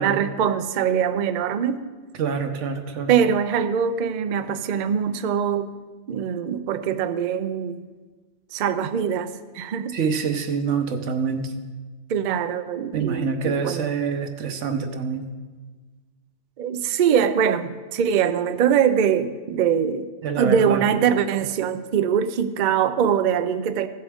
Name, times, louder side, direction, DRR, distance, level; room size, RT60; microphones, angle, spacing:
voice 1, 0.0-1.8 3.1-5.7 6.1-7.8 8.5-10.0 12.1-13.9 16.6-20.1 20.4-23.9, right 8 dB, 55° right, 11 dB, 0.5 m, -23 dB
voice 2, 2.2-3.1 9.9-11.5 12.9-15.3 20.2-20.8, right 5 dB, 85° right, 7 dB, 1.2 m, -26 dB
15.5 x 7.6 x 3.5 m, 1.4 s
omnidirectional pair, 1.2 m